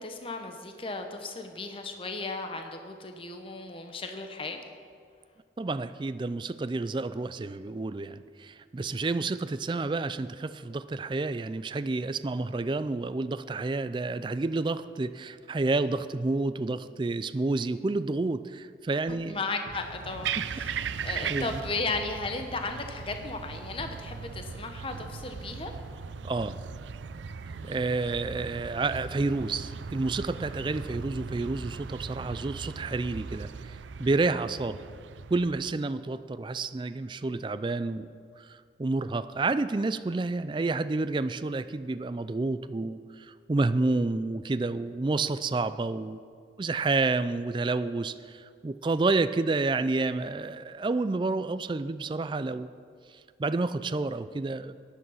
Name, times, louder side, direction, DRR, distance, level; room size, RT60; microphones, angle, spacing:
voice 1, 0.0-4.6 19.1-25.7, left 3 dB, 30° left, 5 dB, 0.9 m, -35 dB
voice 2, 5.6-19.4 21.3-21.6 26.2-26.6 27.6-33.7 34.0-34.8 35.3-38.1 38.4-46.2 46.6-52.7 53.4-54.7, right 3 dB, 25° right, 12 dB, 0.3 m, -29 dB
sound 1, 19.1-19.4 19.7-21.7 21.9-22.2 22.6-22.9 23.2-23.5 23.8-24.6 24.9-26.3 27.2-28.2 28.4-28.9, right 1 dB, 70° right, 2.3 m, -53 dB
sound 2, 19.7-35.7, right 6 dB, 90° right, 0.5 m, -38 dB
14.0 x 10.5 x 5.6 m, 2.2 s
head